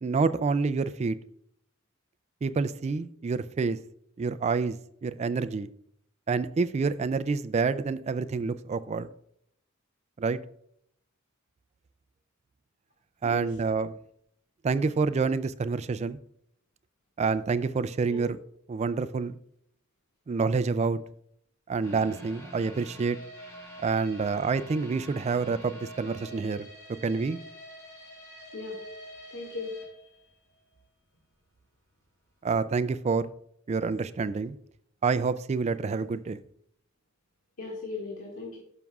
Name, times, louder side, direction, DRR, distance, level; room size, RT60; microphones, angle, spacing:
voice 1, 0.0-1.2 2.4-3.8 4.2-4.8 5.0-5.7 6.3-9.1 10.2-10.4 13.2-14.0 14.6-16.2 17.2-18.4 18.7-19.4 20.3-21.0 21.7-23.2 23.8-26.7 27.0-27.4 32.4-33.3 33.7-34.6 35.0-36.4, right 4 dB, 30° right, 0.3 m, -27 dB
sound 1, 21.8-30.8 31.1-31.2 31.7-31.8, equal, 15° left, 2.3 m, -47 dB
voice 2, 29.3-29.7 37.6-38.6, left 2 dB, 85° left, 1.9 m, -37 dB
12.5 x 6.0 x 2.3 m
head